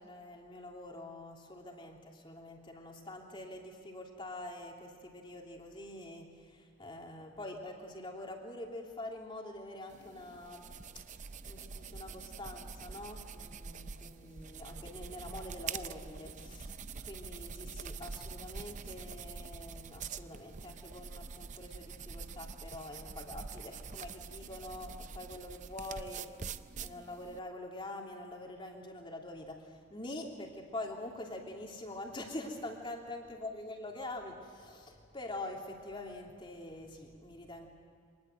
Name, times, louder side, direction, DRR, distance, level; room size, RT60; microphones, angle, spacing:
voice 1, 0.0-11.0 11.5-26.4 26.8-37.7, left 1 dB, 25° left, 0 dB, 3.0 m, -45 dB
sound 1, 9.9-27.4, right 5 dB, 35° right, 0.5 m, -45 dB
25.5 x 20.0 x 7.8 m, 2.3 s
head